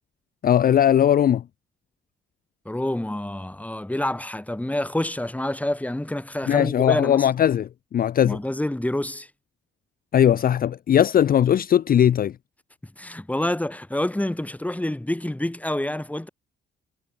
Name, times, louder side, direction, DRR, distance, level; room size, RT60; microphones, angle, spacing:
voice 1, 0.4-1.4 6.5-8.4 10.1-12.3, left 10 dB, 45° left, 0.6 m, -19 dB
voice 2, 2.6-7.3 8.2-9.3 13.0-16.3, left 1 dB, 5° left, 4.8 m, -27 dB
cardioid pair, 90°, 20 cm